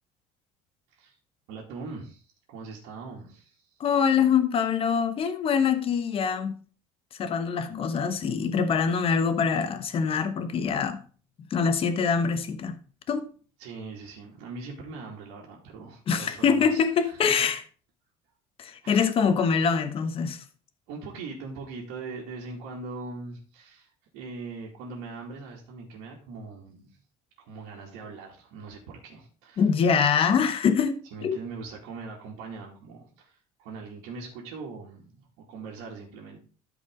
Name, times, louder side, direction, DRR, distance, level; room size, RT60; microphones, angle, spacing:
voice 1, 1.5-3.7 13.6-17.4 18.8-19.1 20.9-27.0 27.4-29.6 31.1-36.4, right 4 dB, 80° right, 2.5 m, -41 dB
voice 2, 3.8-6.6 7.2-11.0 11.5-12.8 13.1-13.3 16.1-17.6 18.6-20.4 29.6-31.4, left 6 dB, 40° left, 1.2 m, -24 dB
12.5 x 4.9 x 3.8 m
cardioid pair, 135°, 15 cm